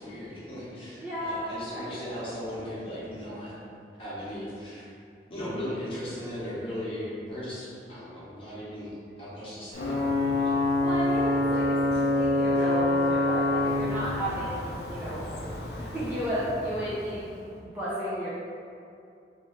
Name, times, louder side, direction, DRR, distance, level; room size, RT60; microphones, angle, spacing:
voice 1, 0.0-3.6 4.0-4.9 5.3-10.5 10.8-11.0, equal, 30° left, -10 dB, 1.1 m, -37 dB
voice 2, 1.0-2.2 10.8-17.3 17.6-18.3, equal, 10° right, -11 dB, 0.5 m, -33 dB
Ocean / Boat Water vehicle / Alarm, 9.7-17.3, left 2 dB, 60° left, 0.5 m, -27 dB
3.1 x 3.1 x 3.1 m, 2.5 s
head